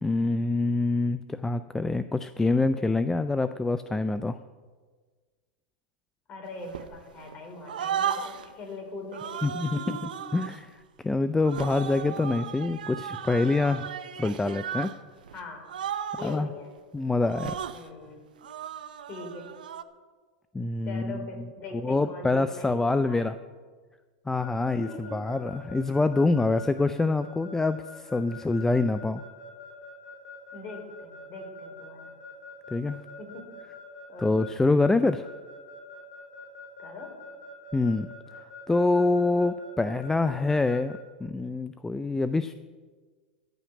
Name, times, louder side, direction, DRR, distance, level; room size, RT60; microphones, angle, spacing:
voice 1, 0.0-4.4 9.4-9.8 10.3-13.9 14.2-14.9 16.2-16.5 16.9-17.6 20.5-21.3 21.7-23.4 24.3-29.2 32.7-33.0 34.2-35.3 37.7-38.4 38.7-42.5, left 3 dB, 10° left, 12 dB, 0.5 m, -26 dB
voice 2, 6.3-10.0 15.3-15.6 16.2-16.7 17.7-18.2 19.1-19.5 20.8-23.2 24.8-25.2 30.5-32.1 33.2-33.5 34.1-34.5 36.8-37.1, left 3 dB, 35° left, 1 dB, 4.3 m, -41 dB
sound 1, 6.7-7.4 7.7-8.5 9.1-10.6 11.4-15.0 15.2-15.4 15.7-16.4 17.2-17.8 18.4-19.8, right 9 dB, 80° right, 0.8 m, -35 dB
Keyboard (musical) / Alarm, 24.4-41.0, left 3 dB, 65° left, 4.1 m, -45 dB
14.5 x 5.8 x 9.5 m, 1.5 s
hypercardioid pair, 100°, 5 cm